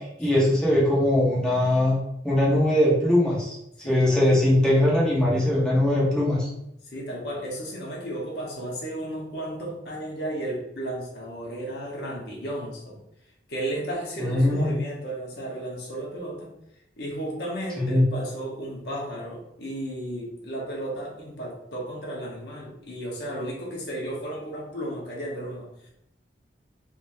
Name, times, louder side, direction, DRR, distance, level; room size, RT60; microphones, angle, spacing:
voice 1, 0.2-2.0 2.2-3.5 3.8-6.5 14.2-14.8 17.8-18.0, left 1 dB, 5° left, -7 dB, 1.2 m, -21 dB
voice 2, 3.8-4.3 6.9-13.0 13.5-16.6 17.0-25.9, right 1 dB, 65° left, -3 dB, 1.2 m, -34 dB
3.6 x 3.1 x 2.7 m, 0.81 s
head